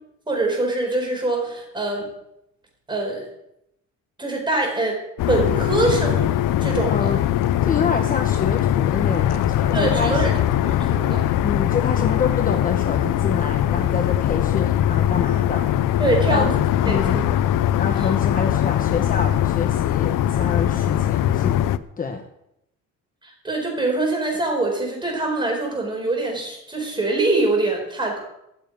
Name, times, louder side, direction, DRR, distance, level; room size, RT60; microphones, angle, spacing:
voice 1, 0.3-2.1 2.9-3.3 4.2-5.0 5.3-6.3 6.6-7.1 9.7-10.3 10.6-11.2 16.0-17.2 18.0-18.1 23.2-28.2, right 2 dB, 15° right, 0 dB, 4.4 m, -24 dB
sound 1, 5.2-21.8, left 11 dB, 85° left, 0.7 m, -21 dB
voice 2, 6.8-7.2 7.6-10.2 11.4-15.7 16.3-16.5 16.8-17.2 17.8-21.5 22.0-22.2, left 5 dB, 25° left, 5 dB, 1.0 m, -27 dB
14.5 x 7.0 x 9.4 m, 0.82 s
cardioid pair, 175°, 31 cm